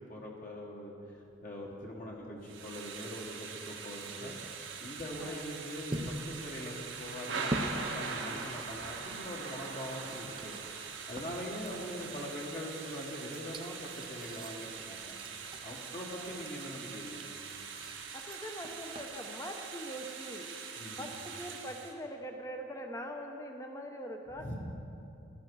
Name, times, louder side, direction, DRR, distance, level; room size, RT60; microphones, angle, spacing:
voice 1, 0.1-0.9 1.4-4.4 4.8-15.2 15.6-17.2 20.8-21.0 24.4-24.6, equal, 40° left, -2 dB, 1.5 m, -42 dB
sound 1, 1.2-19.0, right 1 dB, 25° right, 0.6 m, -46 dB
Thunder / Rain, 2.4-21.9, right 5 dB, 85° right, 1.5 m, -42 dB
voice 2, 16.1-16.5 18.1-24.5, equal, 15° left, 3 dB, 0.8 m, -43 dB
15.0 x 12.5 x 4.7 m, 2.9 s
head